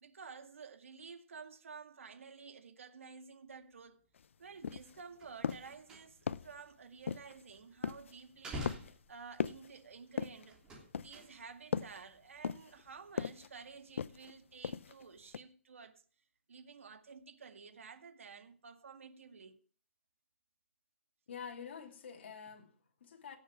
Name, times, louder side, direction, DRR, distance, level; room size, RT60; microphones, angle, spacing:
voice 1, 0.0-4.0 4.4-10.6 10.9-16.0 16.5-19.6, right 5 dB, 75° right, 2.1 m, -52 dB
sound 1, 4.2-4.3 4.6-5.0 5.4-5.8 6.3-6.6 7.1-7.4 7.8-8.1 8.6-9.0 9.4-9.7 10.2-10.5 10.9-11.3 11.7-12.0 12.4-12.8 13.2-13.5 14.0-14.3 14.6-15.0 15.3-15.4, left 7 dB, 70° left, 0.6 m, -38 dB
sound 2, 5.1-6.4 6.7-7.8 8.3-9.7 10.5-11.7 11.9-12.4 12.7-12.9, equal, 10° right, 3.1 m, -48 dB
voice 2, 21.3-23.4, left 7 dB, 50° left, 2.8 m, -48 dB
17.5 x 7.2 x 5.9 m
hypercardioid pair, 165°, 7 cm